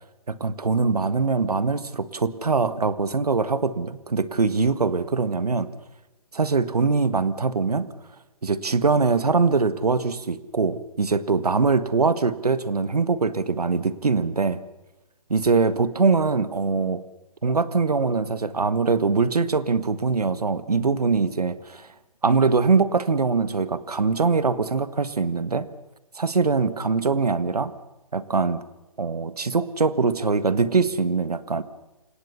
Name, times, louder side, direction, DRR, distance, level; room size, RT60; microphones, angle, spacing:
voice 1, 0.3-5.7 6.3-7.9 8.4-14.6 15.3-17.0 17.4-21.9 22.2-25.7 26.1-27.7 28.1-28.6 29.0-31.6, right 4 dB, 80° right, 14 dB, 1.6 m, -22 dB
28.5 x 17.5 x 7.0 m, 1.0 s
figure-of-eight pair, 140°, 19 cm